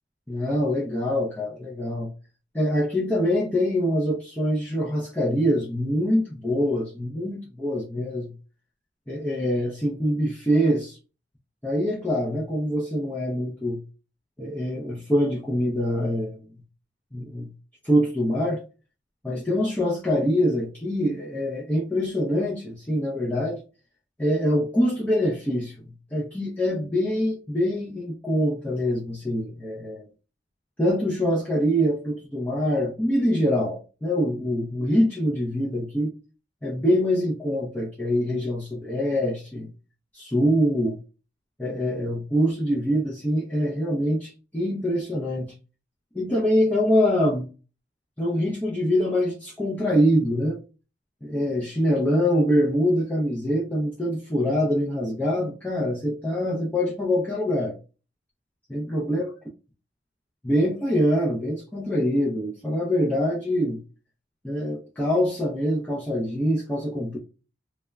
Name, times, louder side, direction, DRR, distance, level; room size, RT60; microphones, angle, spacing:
voice 1, 0.3-2.1 2.5-8.3 9.1-11.0 11.6-13.8 14.4-16.4 17.1-17.5 17.8-18.6 19.2-23.6 24.2-30.0 30.8-36.1 36.6-39.7 40.1-41.0 41.6-45.5 46.1-47.5 48.2-50.6 51.2-57.8 58.7-59.3 60.4-63.8 64.4-67.2, equal, 10° left, -5 dB, 0.4 m, -24 dB
2.2 x 2.0 x 3.1 m, 0.33 s
head